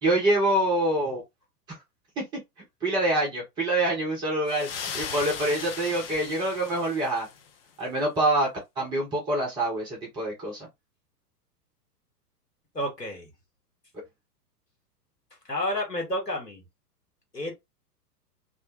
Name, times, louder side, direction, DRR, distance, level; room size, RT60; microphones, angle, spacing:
voice 1, 0.0-1.2 1.7-1.8 2.8-7.3 7.8-8.5 8.8-10.7, right 1 dB, 10° right, 0.4 m, -26 dB
sound 1, 4.5-7.5, left 7 dB, 40° left, 0.5 m, -37 dB
voice 2, 12.7-13.3 15.4-16.6 17.3-17.5, left 1 dB, 90° left, 1.2 m, -30 dB
2.4 x 2.0 x 3.1 m
figure-of-eight pair, 100°, 47 cm